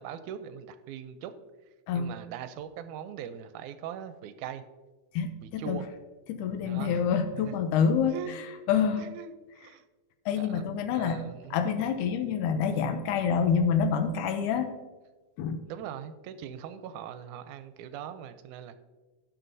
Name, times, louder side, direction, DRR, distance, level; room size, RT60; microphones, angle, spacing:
voice 1, 0.0-1.3 1.9-4.6 5.4-5.9 6.6-7.1 7.3-7.5 8.1-8.5 9.0-9.8 10.3-10.7 10.9-11.6 15.7-18.8, right 9 dB, 80° right, 11 dB, 2.0 m, -41 dB
voice 2, 5.1-5.8 6.3-8.1 8.7-9.1 10.3-11.2 11.5-14.7 15.4-15.6, left 7 dB, 85° left, 8 dB, 2.1 m, -27 dB
17.0 x 5.9 x 2.7 m, 1.2 s
omnidirectional pair, 3.6 m